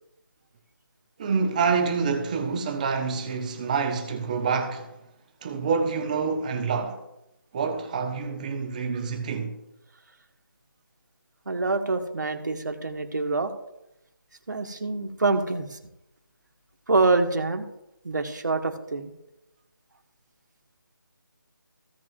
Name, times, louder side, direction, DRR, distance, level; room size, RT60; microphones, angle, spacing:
voice 1, 1.2-4.9 5.4-7.0 7.5-9.6, right 5 dB, 20° right, 1.0 m, -27 dB
voice 2, 11.4-13.5 14.5-15.8 16.9-17.7 18.0-19.1, right 3 dB, 60° right, 1.6 m, -26 dB
16.5 x 7.3 x 2.5 m
figure-of-eight pair, 155°, 11 cm